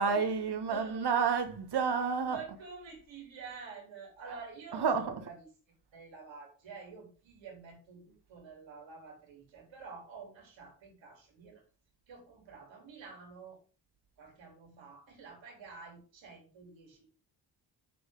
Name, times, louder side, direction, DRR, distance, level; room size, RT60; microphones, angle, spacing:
voice 1, 0.0-2.4 4.2-4.3 4.7-5.3, right 5 dB, 60° right, 1.5 m, -30 dB
voice 2, 0.7-1.2 2.3-5.5 5.9-11.6 12.1-13.6 14.2-17.0, right 5 dB, 75° right, 3.8 m, -49 dB
7.6 x 5.6 x 5.3 m
cardioid pair, 90°, 45 cm